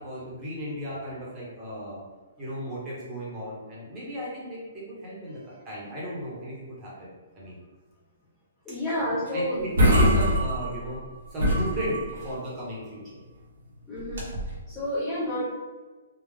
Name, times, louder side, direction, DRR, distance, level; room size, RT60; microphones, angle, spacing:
voice 1, 0.0-2.0 2.4-7.1 7.3-7.6 8.9-9.0 9.3-11.0 11.3-13.0 14.7-14.9, equal, 15° right, -6 dB, 1.0 m, -35 dB
voice 2, 8.6-9.6 13.9-14.3 14.7-15.4, left 1 dB, 5° left, -11 dB, 0.6 m, -29 dB
sound 1, 9.3-9.4 9.6-11.0 11.4-12.3 14.0-14.6, equal, 90° right, 1.3 m, -23 dB
3.6 x 2.3 x 3.4 m, 1.3 s
hypercardioid pair, 170°, 0 cm